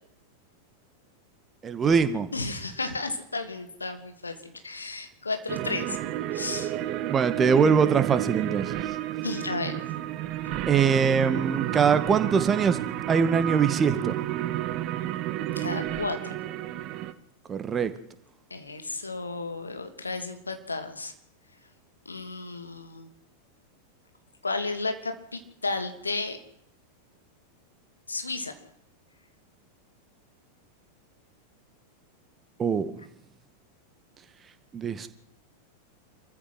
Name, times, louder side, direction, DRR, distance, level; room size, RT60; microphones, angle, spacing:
voice 1, 1.6-2.3 7.1-8.8 10.7-12.8 13.1-14.2 17.5-17.9 32.6-33.0 34.7-35.1, right 6 dB, 20° right, 11 dB, 2.0 m, -23 dB
voice 2, 2.3-6.0 6.3-6.7 9.2-9.8 10.4-10.5 15.6-16.3 18.5-21.1 22.0-23.1 24.4-26.4 28.1-28.5, left 3 dB, 80° left, 7 dB, 2.8 m, -33 dB
sound 1, 5.5-17.1, right 13 dB, 40° right, 1.6 m, -31 dB
27.0 x 14.5 x 7.9 m, 0.75 s
figure-of-eight pair, 90°, 0 cm